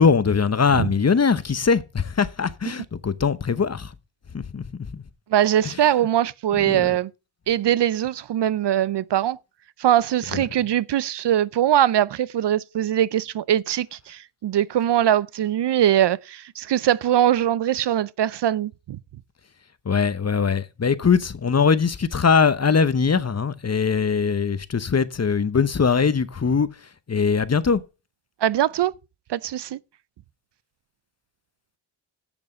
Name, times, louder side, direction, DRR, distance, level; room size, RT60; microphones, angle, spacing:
voice 1, 0.0-3.9 4.3-5.0 5.6-5.8 6.5-7.0 10.3-10.4 19.8-26.7 27.1-27.8, left 5 dB, 35° left, 0.9 m, -21 dB
voice 2, 5.3-7.1 7.5-9.4 9.8-19.0 28.4-28.9 29.3-29.8, right 11 dB, 60° right, 0.6 m, -21 dB
8.1 x 7.1 x 7.4 m
cardioid pair, 70°, 48 cm